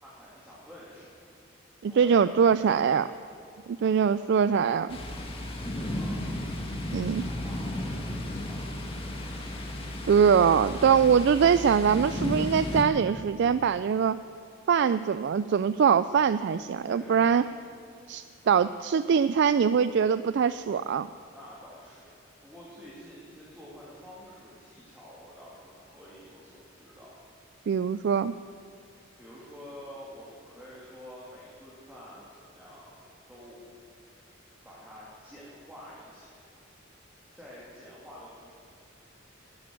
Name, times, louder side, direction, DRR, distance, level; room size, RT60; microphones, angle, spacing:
voice 1, 0.0-1.1 1.9-2.8 5.5-6.3 6.9-9.2 16.8-17.3 21.3-27.2 29.2-33.0 33.3-33.6 34.6-36.5 37.3-38.5, equal, 10° right, -7 dB, 2.7 m, -48 dB
voice 2, 1.8-3.1 3.7-5.0 6.9-7.2 10.0-14.2 14.7-17.4 18.1-21.1 27.7-28.3, right 7 dB, 60° right, 14 dB, 0.3 m, -23 dB
Thunder, 4.9-12.8, left 1 dB, 30° left, 1.8 m, -34 dB
12.0 x 10.5 x 9.3 m, 2.3 s
head